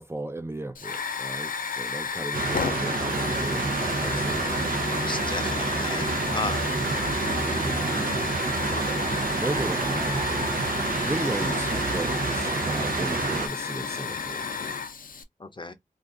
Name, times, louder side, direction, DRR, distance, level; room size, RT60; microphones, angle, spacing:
voice 1, 0.0-4.6 7.5-8.2 9.2-10.3 11.0-14.5, right 2 dB, 15° right, 0.4 m, -35 dB
Hiss / Fire, 0.7-15.2, left 5 dB, 75° left, 0.5 m, -32 dB
sound 1, 2.3-13.5, right 4 dB, 80° right, 0.6 m, -28 dB
voice 2, 4.9-6.7 15.4-15.7, left 3 dB, 35° left, 0.6 m, -34 dB
sound 2, 5.8-13.9, right 3 dB, 55° right, 0.9 m, -43 dB
2.5 x 2.4 x 3.6 m
wide cardioid pair, 85°, 14 cm